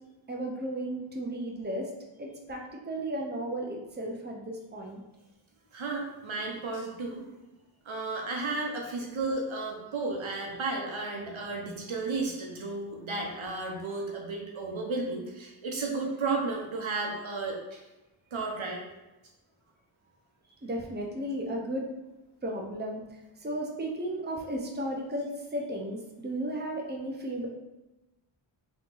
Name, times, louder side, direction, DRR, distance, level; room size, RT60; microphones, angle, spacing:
voice 1, 0.3-1.9 2.2-2.6 2.9-5.0 20.6-21.9 22.4-23.0 23.4-27.5, right 1 dB, 20° right, 0 dB, 0.7 m, -34 dB
voice 2, 5.7-7.2 7.9-17.6 18.3-18.8, right 3 dB, 70° right, 0 dB, 1.0 m, -33 dB
3.6 x 3.1 x 3.8 m, 1.0 s
wide cardioid pair, 50°, 49 cm